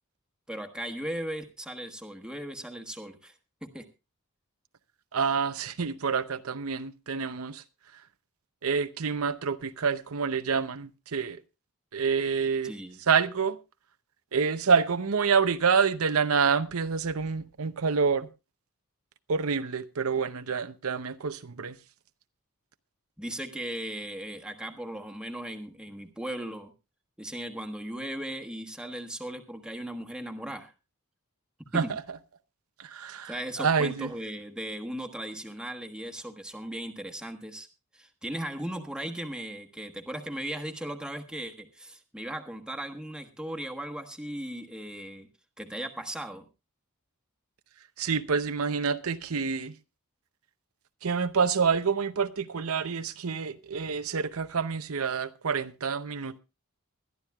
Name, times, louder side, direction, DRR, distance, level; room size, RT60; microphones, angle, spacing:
voice 1, 0.5-3.3 3.6-3.8 12.6-13.0 23.2-26.7 27.2-30.7 31.7-31.9 33.3-37.7 37.9-45.3 45.6-46.4, right 1 dB, 5° right, 1.3 m, -37 dB
voice 2, 5.1-7.6 8.6-11.4 11.9-12.7 13.1-13.6 14.3-18.3 19.3-21.8 31.7-32.2 32.8-34.1 48.0-49.7 51.0-56.4, right 5 dB, 70° right, 0.7 m, -27 dB
21.5 x 12.0 x 2.3 m
head